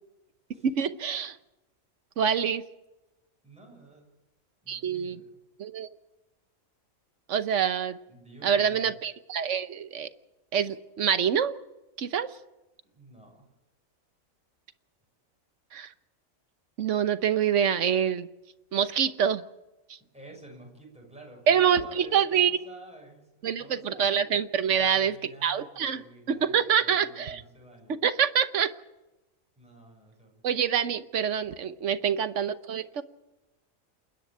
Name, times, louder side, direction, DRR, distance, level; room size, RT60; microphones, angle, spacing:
voice 1, 0.6-1.4 2.2-2.6 4.7-5.2 5.6-5.9 7.3-8.0 8.4-10.1 10.5-11.5 12.0-12.3 15.7-15.9 16.8-18.3 18.7-19.4 21.5-22.5 23.4-25.1 25.4-26.0 26.3-27.4 27.9-28.7 30.4-33.0, right 8 dB, 65° right, 12 dB, 1.2 m, -26 dB
voice 2, 3.4-4.1 4.6-5.3 8.1-8.9 12.8-13.5 20.1-24.2 24.7-28.0 29.6-30.4, right 1 dB, 5° right, -1 dB, 6.5 m, -50 dB
28.5 x 10.5 x 8.9 m, 1.0 s
omnidirectional pair, 1.4 m